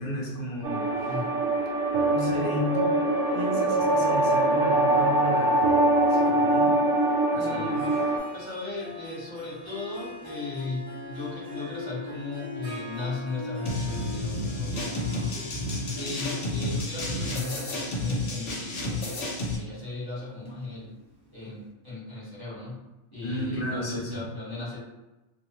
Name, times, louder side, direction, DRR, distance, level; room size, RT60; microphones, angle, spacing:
voice 1, 0.0-1.2 2.1-3.0 3.3-5.8 6.1-6.8 7.3-7.9 23.2-24.3, left 1 dB, 60° left, -1 dB, 0.6 m, -33 dB
sound 1, 0.6-8.2, right 2 dB, 90° right, 1.0 m, -23 dB
voice 2, 1.1-1.4 7.3-7.8 8.3-15.5 15.9-19.2 19.5-21.0 21.3-22.8 23.1-24.8, left 3 dB, 20° left, -8 dB, 0.9 m, -37 dB
Harp, 7.7-21.3, left 2 dB, 25° right, 0.5 m, -42 dB
sound 2, 13.7-19.6, left 2 dB, 85° left, 1.0 m, -31 dB
2.4 x 2.0 x 2.9 m, 1.0 s
omnidirectional pair, 1.2 m